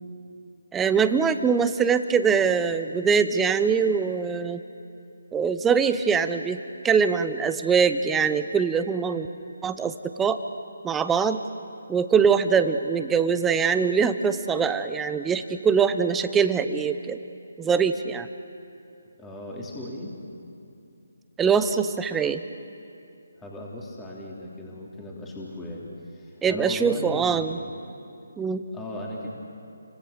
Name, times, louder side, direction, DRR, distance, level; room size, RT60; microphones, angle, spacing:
voice 1, 0.7-4.6 5.3-9.3 9.6-10.4 10.8-11.4 11.9-17.2 17.6-18.3 21.4-22.4 26.4-27.6 28.4-28.6, right 6 dB, 10° right, 10 dB, 0.8 m, -23 dB
voice 2, 19.2-20.2 23.4-27.4 28.7-29.3, left 1 dB, 10° left, -3 dB, 3.3 m, -37 dB
30.0 x 25.0 x 6.7 m, 2.6 s
figure-of-eight pair, 150°, 0 cm